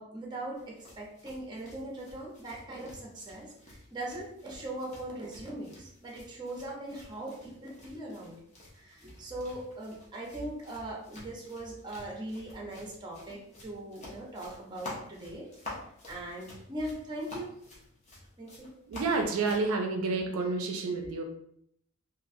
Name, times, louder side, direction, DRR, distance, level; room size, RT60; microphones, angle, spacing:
voice 1, 0.0-8.4 8.7-15.5 16.1-17.5 18.4-18.7, right 1 dB, 20° right, -2 dB, 0.6 m, -40 dB
sound 1, 0.6-19.7, left 2 dB, 30° left, 0.7 m, -50 dB
voice 2, 18.9-21.2, right 3 dB, 70° right, 3 dB, 0.4 m, -29 dB
3.1 x 2.4 x 2.5 m, 0.72 s
head